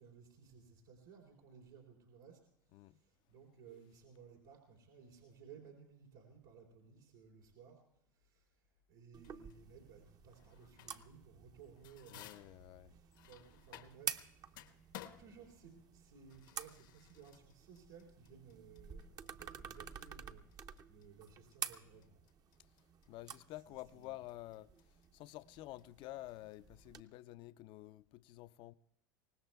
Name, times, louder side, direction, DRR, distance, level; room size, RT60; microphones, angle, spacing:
voice 1, 0.0-2.4 2.7-7.8 8.1-8.5 8.9-12.6 12.9-22.2 23.9-24.1, right 6 dB, 90° right, 3.2 m, -59 dB
sound 1, 9.1-27.0, right 7 dB, 35° right, 0.7 m, -50 dB
sound 2, 9.2-9.6 10.3-11.2 11.5-14.2 14.5-26.8, left 12 dB, 80° left, 1.1 m, -58 dB
voice 2, 12.1-13.0 23.1-28.7, left 16 dB, 50° left, 0.5 m, -50 dB
24.0 x 19.0 x 2.3 m
hypercardioid pair, 100°, 11 cm